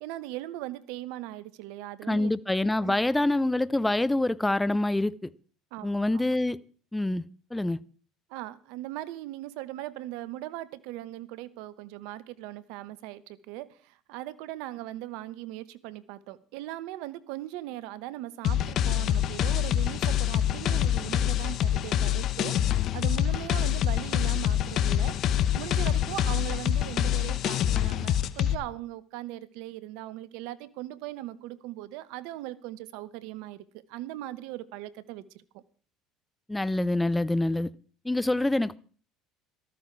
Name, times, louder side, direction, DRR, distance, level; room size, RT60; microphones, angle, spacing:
voice 1, 0.0-2.3 2.8-3.0 5.7-6.2 8.3-22.5 22.9-25.2 25.5-33.6 33.9-35.6, right 15 dB, 75° right, 1.0 m, -39 dB
voice 2, 2.1-5.3 5.8-6.6 6.9-7.2 7.5-7.8 36.5-37.7 38.0-38.8, left 2 dB, 10° left, 0.7 m, -26 dB
sound 1, 18.4-28.5, left 10 dB, 55° left, 1.0 m, -26 dB
14.0 x 13.5 x 4.7 m
hypercardioid pair, 75°, 0 cm